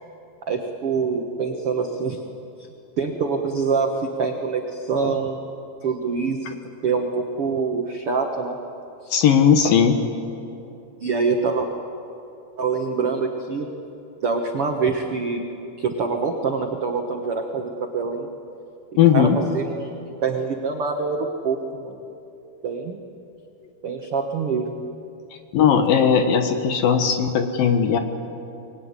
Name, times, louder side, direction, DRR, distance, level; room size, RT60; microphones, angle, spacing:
voice 1, 0.5-2.2 3.0-5.4 5.8-6.6 6.8-8.6 9.0-9.2 11.0-11.7 12.6-13.7 14.2-15.4 15.8-18.3 19.1-22.0 22.6-23.0 23.8-24.8, right 5 dB, 80° right, 2 dB, 1.2 m, -25 dB
voice 2, 9.1-10.0 19.0-19.4 25.5-28.0, left 7 dB, 65° left, 6 dB, 2.6 m, -17 dB
24.5 x 22.0 x 9.7 m, 2.8 s
omnidirectional pair, 5.0 m